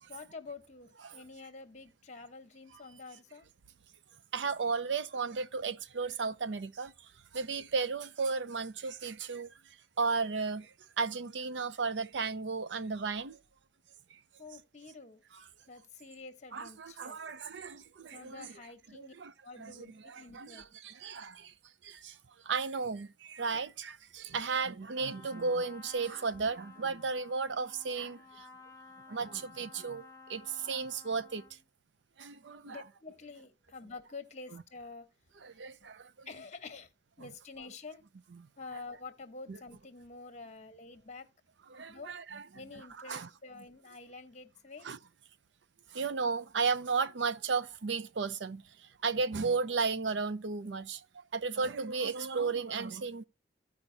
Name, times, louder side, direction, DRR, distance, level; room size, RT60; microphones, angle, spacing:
voice 1, 0.1-3.5 14.4-15.2 15.7-17.2 18.1-19.1 19.4-20.7 23.5-23.6 32.7-35.1 35.8-35.9 36.2-36.9 37.2-38.0 38.6-41.3 41.9-42.1 42.5-44.9, left 4 dB, 40° left, 1.2 m, -48 dB
voice 2, 4.3-9.5 10.0-13.4 14.1-14.2 16.5-18.5 18.9-19.3 19.6-21.5 21.8-22.2 22.4-28.5 29.1-31.4 32.2-32.8 35.4-36.3 38.4-38.5 39.5-39.6 41.7-42.4 43.1-43.3 44.8-45.0 45.9-53.2, right 4 dB, 85° right, 0.6 m, -34 dB
Trumpet, 24.9-31.6, left 3 dB, 15° left, 1.0 m, -54 dB
15.0 x 5.1 x 2.8 m
head